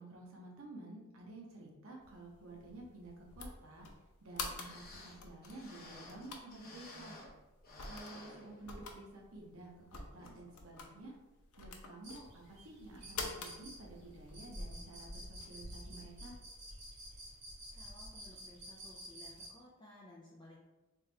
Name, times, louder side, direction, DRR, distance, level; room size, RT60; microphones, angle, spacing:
voice 1, 0.0-3.9 4.2-7.2 7.8-11.2 11.6-16.4, right 2 dB, 70° right, -2 dB, 0.8 m, -52 dB
sound 1, 2.0-15.9, left 3 dB, 90° left, 0.6 m, -49 dB
sound 2, 4.3-4.4 4.5-7.4 7.6-9.0 9.4-9.5 10.2-10.4 10.9-11.0, left 2 dB, 40° left, 0.9 m, -54 dB
sound 3, 12.0-19.5, equal, 55° right, 1.5 m, -50 dB
voice 2, 17.7-20.6, left 1 dB, 20° left, -5 dB, 0.5 m, -57 dB
3.5 x 2.9 x 3.3 m, 1.1 s
head